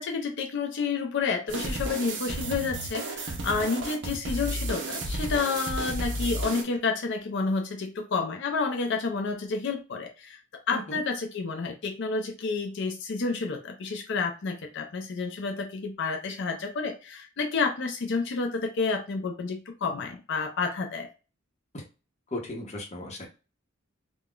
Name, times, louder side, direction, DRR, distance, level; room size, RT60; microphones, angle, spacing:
voice 1, 0.0-21.1, left 4 dB, 60° left, 4 dB, 0.5 m, -30 dB
sound 1, 1.5-6.6, right 1 dB, 60° right, 0.7 m, -32 dB
voice 2, 10.7-11.0 21.7-21.8 22.3-23.3, left 1 dB, 35° left, 0 dB, 0.8 m, -36 dB
3.6 x 2.2 x 2.3 m, 0.31 s
head